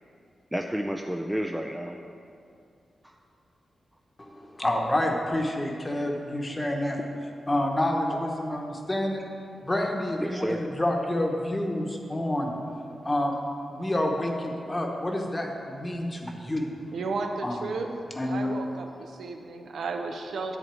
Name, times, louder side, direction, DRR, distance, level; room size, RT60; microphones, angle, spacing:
voice 1, 0.5-2.0 3.0-3.2 10.2-10.6 16.3-16.4, equal, 5° right, 2 dB, 0.4 m, -31 dB
voice 2, 4.2-7.0 7.5-9.2 9.6-12.5 13.0-13.4 13.7-16.6 17.4-17.7 18.2-18.6, left 1 dB, 20° left, 1 dB, 1.0 m, -28 dB
voice 3, 16.9-17.9 18.2-20.6, right 4 dB, 85° right, 4 dB, 0.7 m, -33 dB
10.5 x 4.0 x 7.5 m, 2.5 s
wide cardioid pair, 115°, 0 cm